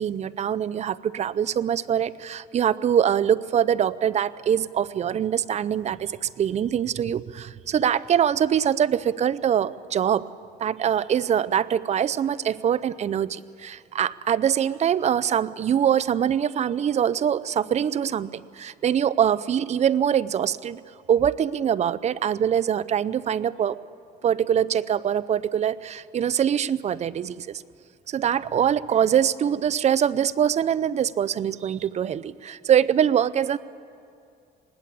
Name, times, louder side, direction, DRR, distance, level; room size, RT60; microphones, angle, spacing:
voice 1, 0.0-10.3 10.6-20.8 21.1-23.8 24.2-27.6 28.1-33.6, right 9 dB, 40° right, 16 dB, 0.5 m, -23 dB
20.5 x 19.0 x 8.4 m, 2.4 s
cardioid pair, 110°, 17 cm